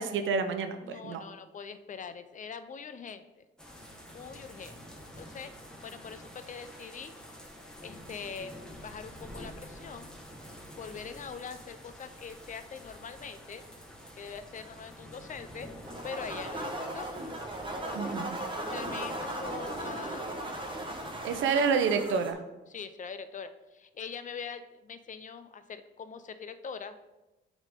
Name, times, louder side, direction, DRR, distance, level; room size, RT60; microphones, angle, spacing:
voice 1, 0.0-1.2 17.9-18.4 21.2-22.4, right 5 dB, 75° right, 8 dB, 0.7 m, -28 dB
voice 2, 0.8-3.2 4.1-4.7 5.1-5.5 5.8-7.1 7.8-10.1 10.7-13.6 14.2-15.7 16.0-17.1 18.7-20.6 21.5-21.7 22.7-27.0, left 6 dB, 40° left, 11 dB, 0.5 m, -43 dB
sound 1, 3.6-21.4, equal, 5° left, 1.4 m, -48 dB
sound 2, 15.9-22.3, right 1 dB, 25° right, 1.2 m, -37 dB
8.8 x 3.7 x 3.6 m, 1.0 s
cardioid pair, 90°, 20 cm